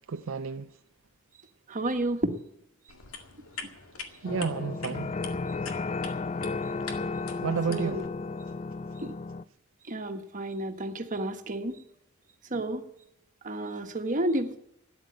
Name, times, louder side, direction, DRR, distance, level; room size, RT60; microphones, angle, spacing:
voice 1, 0.1-0.7 4.2-5.1 7.4-8.0, right 5 dB, 65° right, 0.5 m, -31 dB
voice 2, 1.7-2.4 7.7-8.0 9.0-9.1 9.9-11.8 12.5-12.8 13.4-14.6, right 1 dB, 40° right, 1.4 m, -31 dB
sound 1, 2.9-8.1, left 5 dB, 85° left, 2.0 m, -44 dB
sound 2, 4.2-9.4, left 3 dB, 30° left, 0.4 m, -33 dB
13.0 x 9.5 x 8.5 m
head